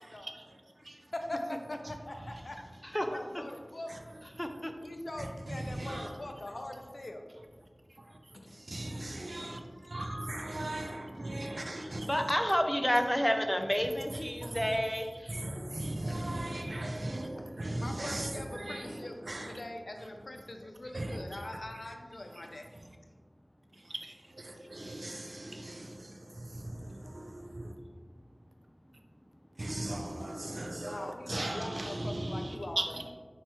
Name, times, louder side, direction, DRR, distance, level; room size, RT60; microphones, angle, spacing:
voice 1, 0.2-1.1 1.9-2.0 3.9-4.0 5.2-6.1 8.0-8.2 8.5-12.3 14.1-14.8 15.3-19.6 20.9-21.2 21.8-21.9 22.3-22.5 22.8-22.9 23.7-27.7 29.6-33.0, right 1 dB, 75° right, 4 dB, 0.4 m, -38 dB
voice 2, 1.1-2.6 3.0-4.2 4.8-7.2 8.3-8.6 16.1-16.2 17.8-19.2 19.4-22.7 30.4-30.5 30.9-33.0, left 1 dB, 80° left, 4 dB, 0.4 m, -42 dB
voice 3, 4.4-4.7 11.8-15.3, equal, 10° left, 5 dB, 0.4 m, -30 dB
4.4 x 3.4 x 2.9 m, 1.5 s
wide cardioid pair, 50°, 0 cm